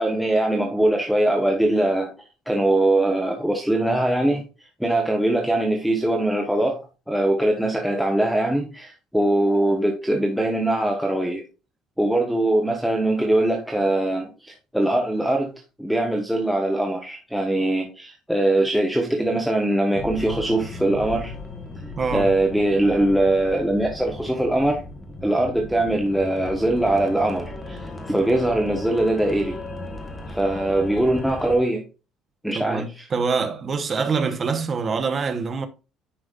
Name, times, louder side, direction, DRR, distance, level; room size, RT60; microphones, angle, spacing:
voice 1, 0.0-2.1 2.5-4.4 4.8-6.8 7.1-11.4 12.0-15.5 15.8-21.3 22.1-24.8 25.2-29.6 30.3-31.8 32.4-33.1, right 1 dB, ahead, 0.9 m, -22 dB
sound 1, 19.9-31.6, left 2 dB, 15° left, 1.2 m, -36 dB
voice 2, 22.0-22.3 32.5-35.7, right 5 dB, 25° right, 0.8 m, -25 dB
9.9 x 5.2 x 2.4 m
cardioid pair, 165°, 0 cm